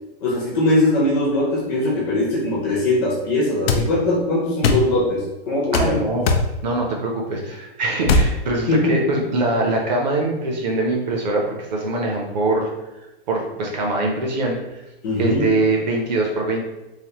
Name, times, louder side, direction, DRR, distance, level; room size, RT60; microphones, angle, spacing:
voice 1, 0.2-6.0 8.7-9.1 15.0-15.4, left 1 dB, 20° left, -5 dB, 0.5 m, -21 dB
sound 1, 3.7-3.8 4.6-4.9 5.7-5.9 6.3-6.5 8.0-8.3, left 3 dB, 70° left, 0.5 m, -17 dB
voice 2, 5.7-6.3 6.6-12.7 13.3-14.6 15.2-16.6, right 2 dB, 45° right, 0 dB, 0.6 m, -22 dB
3.3 x 2.0 x 2.8 m, 0.98 s
hypercardioid pair, 165°, 31 cm